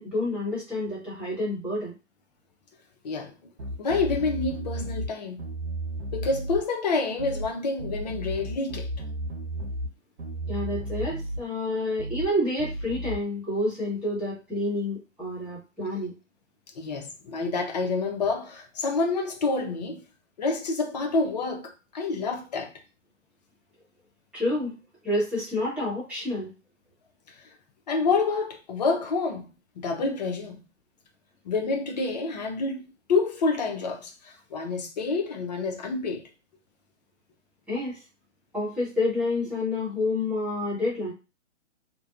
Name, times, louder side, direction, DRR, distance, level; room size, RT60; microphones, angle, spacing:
voice 1, 0.0-1.9 10.5-16.1 24.3-24.7 25.0-26.5 37.7-38.0 38.5-41.1, left 1 dB, 5° right, 1.1 m, -28 dB
sound 1, 3.6-5.1 5.4-6.6 7.2-7.5 7.8-9.9 10.2-11.4 12.0-12.3 12.6-13.2, right 1 dB, 55° right, 0.8 m, -33 dB
voice 2, 3.8-5.4 6.1-8.9 16.8-20.0 20.4-22.7 27.9-30.6 31.5-36.2, left 4 dB, 35° left, 0.5 m, -28 dB
2.6 x 2.1 x 2.4 m
figure-of-eight pair, 130°, 37 cm